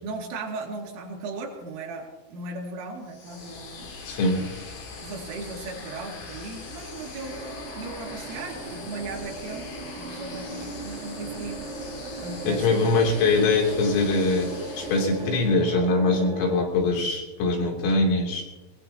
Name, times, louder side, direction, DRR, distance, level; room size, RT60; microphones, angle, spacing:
voice 1, 0.0-4.0 4.3-4.5 5.0-7.5 7.8-11.7 12.2-12.9, right 3 dB, 75° right, 0 dB, 5.0 m, -37 dB
sound 1, 3.1-15.7, left 4 dB, 55° left, 2.1 m, -41 dB
voice 2, 4.1-4.4 12.5-14.5 14.8-18.4, left 3 dB, 85° left, 0 dB, 5.8 m, -22 dB
sound 2, 7.2-16.7, right 3 dB, 60° right, 3.0 m, -38 dB
21.0 x 20.5 x 2.9 m, 1.1 s
omnidirectional pair, 5.8 m